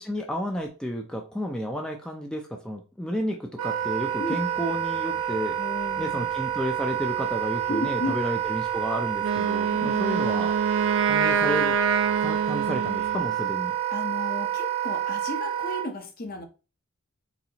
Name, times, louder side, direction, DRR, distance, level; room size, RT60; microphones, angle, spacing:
voice 1, 0.1-5.6 6.0-10.6 11.1-11.8 12.2-13.8, equal, 5° left, 0.4 m, -31 dB
Wind instrument woodwind instrument, 3.6-15.9, right 11 dB, 85° right, 0.8 m, -29 dB
sound 1, 3.8-13.3, left 1 dB, 85° left, 0.8 m, -51 dB
voice 2, 5.6-6.2 7.7-8.2 9.7-10.1 13.9-16.5, left 1 dB, 45° left, 0.8 m, -33 dB
Wind instrument woodwind instrument 2, 9.2-13.3, right 6 dB, 60° right, 0.4 m, -25 dB
4.1 x 3.9 x 2.9 m
head